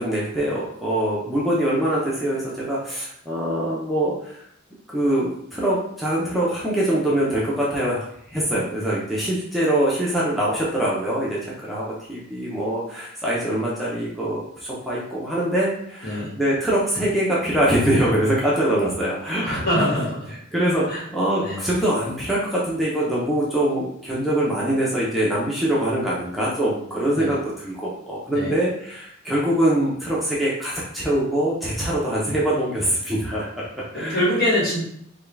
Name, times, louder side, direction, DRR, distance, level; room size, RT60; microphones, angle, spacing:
voice 1, 0.0-4.4 4.9-19.6 20.5-34.2, right 1 dB, ahead, -7 dB, 0.6 m, -23 dB
voice 2, 19.4-20.3 20.9-21.0 21.4-21.6 27.1-27.3 28.3-28.5 33.9-34.8, left 1 dB, 55° left, -6 dB, 1.5 m, -24 dB
3.6 x 2.3 x 3.3 m, 0.70 s
head